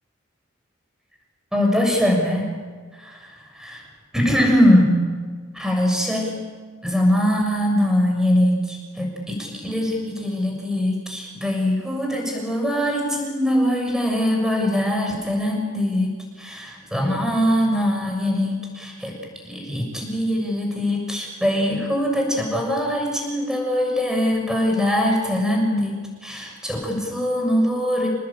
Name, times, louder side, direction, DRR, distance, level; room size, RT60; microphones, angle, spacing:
voice 1, 1.5-2.5 2.9-3.8 4.1-5.0 5.5-6.4 6.8-19.1 19.4-28.1, equal, 5° right, 0 dB, 6.9 m, -22 dB
28.0 x 20.0 x 8.8 m, 1.5 s
head